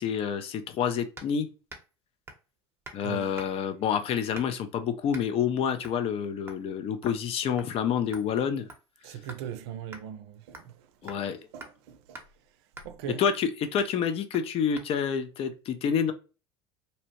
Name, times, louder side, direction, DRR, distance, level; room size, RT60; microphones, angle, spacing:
voice 1, 0.0-1.5 2.9-8.7 11.0-11.4 13.2-16.1, left 7 dB, 45° left, 0.5 m, -28 dB
sound 1, 1.2-1.4 1.7-1.9 2.3-2.5 2.8-3.0 3.4-3.7 4.3-4.7 5.1-5.3 5.8-6.0 6.5-6.7 7.0-7.3 7.6-7.7 8.1-9.5 9.9-10.0 10.5-10.8 11.1-11.2 11.6-11.7 12.1-12.3 12.8-13.0 13.3-13.5 13.8-13.9 14.3-14.5 14.8-14.9, right 2 dB, 15° right, 0.8 m, -46 dB
voice 2, 3.0-3.4 9.0-11.1 11.5-12.2 12.8-13.3, right 9 dB, 75° right, 0.4 m, -40 dB
2.8 x 2.0 x 2.9 m
hypercardioid pair, 90°, 14 cm